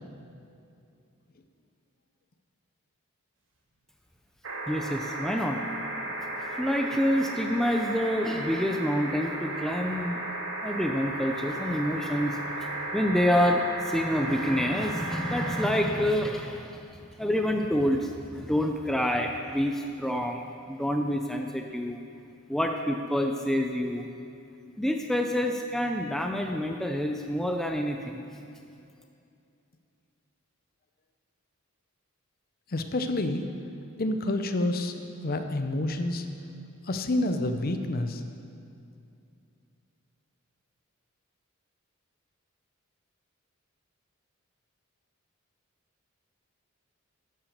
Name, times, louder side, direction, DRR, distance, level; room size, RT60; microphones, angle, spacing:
sound 1, 4.4-15.7 17.1-17.2, right 2 dB, 60° right, 1.8 m, -35 dB
voice 1, 4.7-5.6 6.6-10.2 10.6-22.0 22.5-24.1 24.8-28.2, equal, ahead, 3 dB, 0.4 m, -27 dB
voice 2, 32.7-33.4 34.0-34.9 35.2-36.3 36.8-38.2, left 1 dB, 45° left, 8 dB, 0.6 m, -28 dB
11.5 x 6.1 x 6.5 m, 2.6 s
head